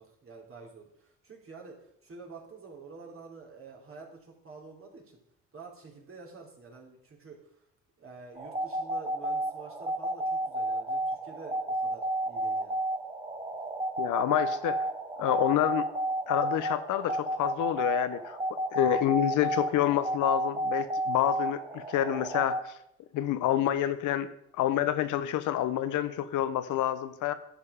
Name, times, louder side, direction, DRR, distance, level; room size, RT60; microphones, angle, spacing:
voice 1, 0.0-5.2 5.5-7.4 8.0-12.8, right 4 dB, 45° right, -1 dB, 3.2 m, -48 dB
sound 1, 8.4-22.6, right 1 dB, 15° right, 1.3 m, -32 dB
voice 2, 14.0-14.9 15.2-15.9 16.3-18.4 18.7-22.7 23.1-24.3 24.6-27.3, left 12 dB, 85° left, 12 dB, 0.8 m, -28 dB
11.5 x 6.9 x 5.0 m, 0.76 s
cardioid pair, 90°, 30 cm